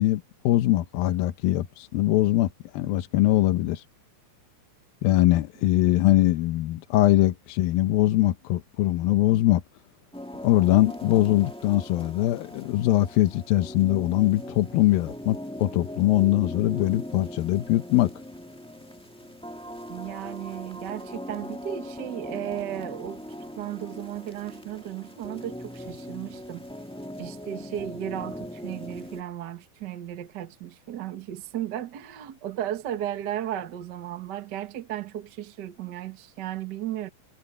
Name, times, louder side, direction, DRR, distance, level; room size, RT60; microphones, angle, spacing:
voice 1, 0.0-3.8 5.0-9.6 10.4-18.1, left 15 dB, 85° left, 2.7 m, -22 dB
sound 1, 10.1-29.2, equal, 5° left, 0.4 m, -40 dB
voice 2, 19.9-23.2 23.6-26.7 27.2-37.1, right 11 dB, 75° right, 0.9 m, -35 dB
omnidirectional pair, 4.1 m